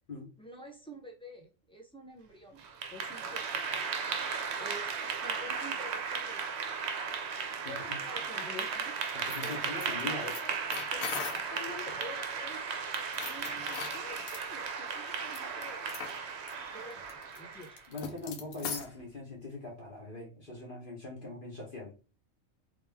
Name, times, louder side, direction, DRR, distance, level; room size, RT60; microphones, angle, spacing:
voice 1, 0.4-2.6 2.9-3.6 4.6-6.5 7.7-9.0 9.4-9.8 10.0-15.9 16.7-17.8, left 1 dB, 5° left, 1 dB, 0.6 m, -48 dB
Clapping / Applause, 2.6-17.9, right 5 dB, 60° right, 0.8 m, -36 dB
voice 2, 7.6-8.0 9.1-10.3 17.9-21.9, left 2 dB, 40° left, -2 dB, 1.3 m, -42 dB
sound 1, 9.1-11.6 13.0-14.4 15.2-15.4 15.9-16.2 16.5-16.6 16.9-19.0, left 5 dB, 90° left, 1.2 m, -40 dB
3.4 x 3.1 x 3.5 m, 0.34 s
omnidirectional pair, 1.4 m